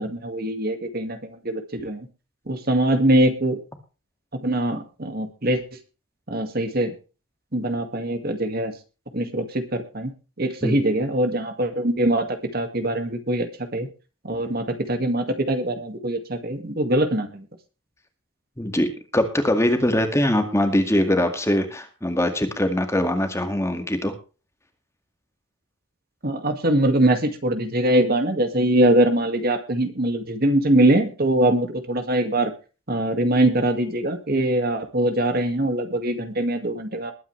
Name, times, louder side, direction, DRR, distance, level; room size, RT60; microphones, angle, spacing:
voice 1, 0.0-2.1 2.5-3.6 4.4-5.6 6.3-6.9 7.5-8.7 9.1-10.1 10.4-12.3 12.5-13.5 13.7-13.9 14.2-17.5 26.2-32.5 32.9-37.1, right 1 dB, 45° right, 7 dB, 2.1 m, -22 dB
voice 2, 18.6-24.1, left 1 dB, 15° left, 6 dB, 2.0 m, -22 dB
21.0 x 9.2 x 3.3 m, 0.33 s
head